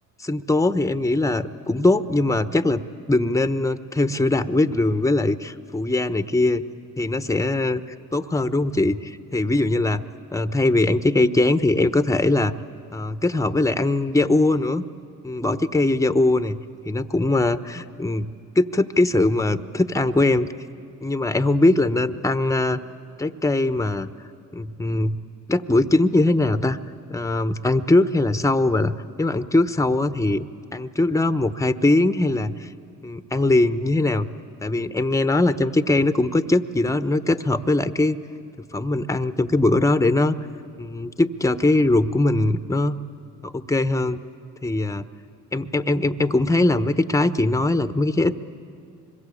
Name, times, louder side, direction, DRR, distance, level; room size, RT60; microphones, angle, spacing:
voice 1, 0.2-2.8 3.1-6.6 7.0-7.8 8.1-10.0 10.3-12.5 12.9-14.8 15.2-16.6 16.9-18.3 18.5-20.5 21.0-22.8 23.2-24.1 24.5-25.2 25.5-26.8 27.1-30.5 30.7-32.7 33.0-34.3 34.6-38.2 38.7-40.3 40.8-43.0 43.4-44.2 44.6-45.1 45.5-48.4, left 2 dB, 10° left, 12 dB, 0.9 m, -21 dB
25.0 x 22.0 x 8.6 m, 2.4 s
supercardioid pair, 65°, 37 cm